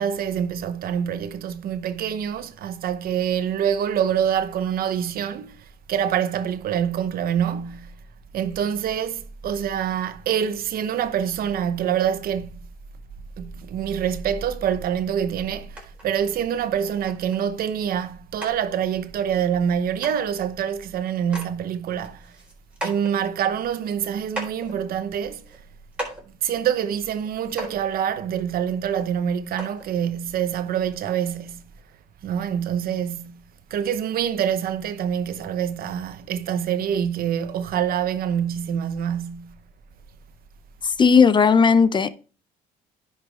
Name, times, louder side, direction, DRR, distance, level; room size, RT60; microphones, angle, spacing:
voice 1, 0.0-8.0 8.3-12.6 13.4-22.3 22.8-25.4 26.4-31.6 32.2-33.4 33.7-39.6, right 8 dB, 60° right, 0.9 m, -26 dB
sound 1, 15.8-16.1 16.6-16.7 17.1-17.4 18.0-18.1 18.4-18.5 19.7-19.8 20.0-20.2 20.8-20.9 21.2-21.5 21.9-23.1 23.8-23.9 24.3-24.8 25.4-25.6 25.9-26.2 27.2-27.3 27.6-27.8 28.9-29.0 29.6-29.9 30.7-30.8, right 1 dB, 5° right, 4.0 m, -35 dB
voice 2, 41.0-42.1, left 5 dB, 25° left, 0.5 m, -15 dB
10.5 x 5.6 x 3.4 m
cardioid pair, 110°, 17 cm